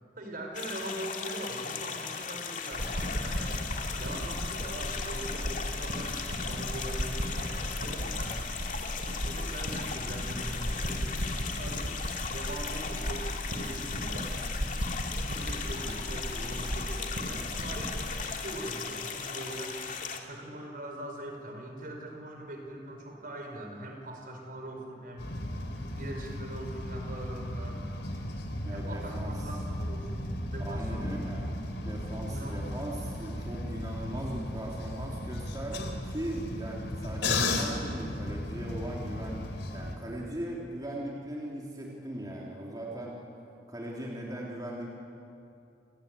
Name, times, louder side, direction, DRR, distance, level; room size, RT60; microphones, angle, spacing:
voice 1, 0.2-3.6 4.0-8.5 9.2-11.9 12.3-14.4 15.3-19.8 20.2-25.3 26.0-27.8 28.7-31.4 32.3-32.8, right 1 dB, 50° right, 2 dB, 5.3 m, -42 dB
sound 1, 0.5-20.2, left 6 dB, 50° left, 2.4 m, -37 dB
sound 2, 2.7-18.1, equal, 90° right, 5.0 m, -35 dB
sound 3, 25.2-40.0, left 1 dB, 80° left, 3.5 m, -35 dB
voice 2, 28.6-29.5 30.6-31.5 31.8-43.1 43.7-44.9, right 1 dB, 20° right, -3 dB, 3.4 m, -39 dB
29.0 x 19.5 x 10.0 m, 2.6 s
head